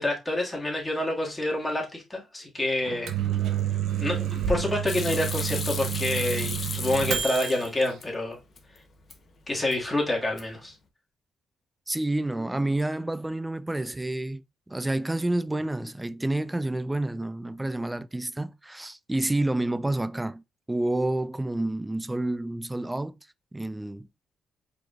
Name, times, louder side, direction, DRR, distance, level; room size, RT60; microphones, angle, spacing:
voice 1, 0.0-3.1 4.0-8.4 9.5-10.7, left 1 dB, 15° left, 1.9 m, -28 dB
Microwave oven, 2.8-7.6, right 10 dB, 75° right, 0.7 m, -29 dB
Hands / Sink (filling or washing), 4.9-8.1 8.4-9.2 9.5-10.0 10.2-10.7, left 5 dB, 50° left, 0.9 m, -35 dB
voice 2, 11.9-20.4 20.7-23.2 23.5-24.1, right 1 dB, 10° right, 0.3 m, -29 dB
4.7 x 4.0 x 2.4 m
cardioid pair, 90°, 0 cm